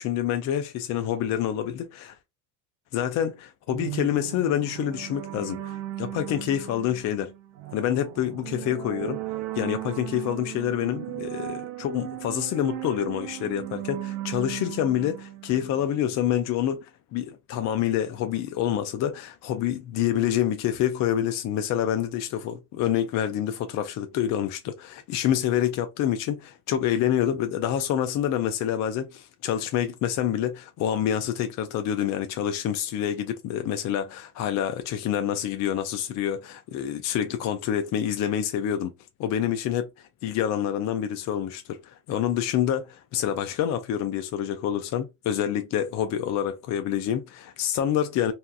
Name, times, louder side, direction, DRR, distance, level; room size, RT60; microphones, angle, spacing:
voice 1, 0.0-2.2 2.9-7.3 7.7-9.2 9.5-38.9 39.2-39.9 40.2-48.3, left 10 dB, 40° left, 0.4 m, -27 dB
sound 1, 3.7-16.2, right 15 dB, 70° right, 0.6 m, -37 dB
2.8 x 2.3 x 2.3 m
supercardioid pair, 105°, 44 cm